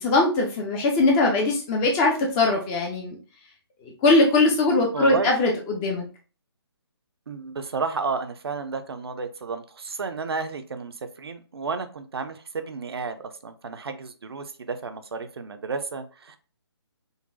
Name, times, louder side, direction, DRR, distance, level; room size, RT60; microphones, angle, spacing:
voice 1, 0.0-3.2 3.8-6.0, left 2 dB, 10° left, 0 dB, 0.3 m, -21 dB
voice 2, 4.9-5.3 7.3-16.4, right 4 dB, 65° right, 8 dB, 0.5 m, -32 dB
3.8 x 2.1 x 2.5 m, 0.36 s
figure-of-eight pair, 145°, 14 cm